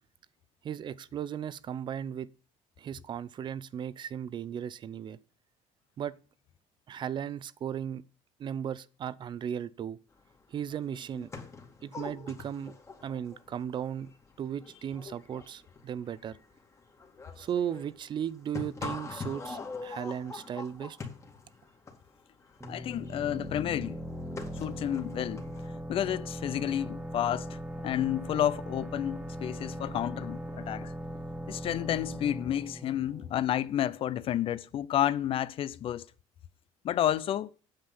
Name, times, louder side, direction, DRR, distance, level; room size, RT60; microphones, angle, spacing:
voice 1, 0.6-2.3 2.8-5.2 6.0-6.2 6.9-8.0 8.4-10.0 10.5-11.3 11.8-12.7 13.0-14.1 14.4-16.4 17.4-21.0, right 9 dB, 40° right, 0.6 m, -36 dB
sound 1, 10.3-10.4 10.6-25.7, left 4 dB, 25° left, 2.1 m, -44 dB
sound 2, 22.6-34.1, equal, 10° right, 1.6 m, -40 dB
voice 2, 22.7-24.0 24.6-30.9 31.5-36.1 36.8-37.5, left 11 dB, 50° left, 0.6 m, -31 dB
8.9 x 7.5 x 5.5 m
cardioid pair, 130°, 12 cm